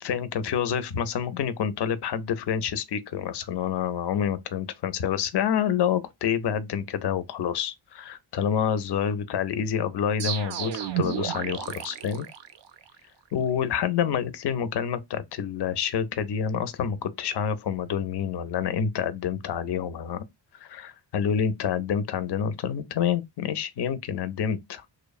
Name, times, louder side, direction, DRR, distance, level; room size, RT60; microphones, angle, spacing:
voice 1, 0.0-12.3 13.3-20.2 20.5-24.9, left 8 dB, 55° left, 0.5 m, -28 dB
sound 1, 10.2-13.0, right 9 dB, 60° right, 0.5 m, -32 dB
3.0 x 2.0 x 2.3 m
wide cardioid pair, 100°, 49 cm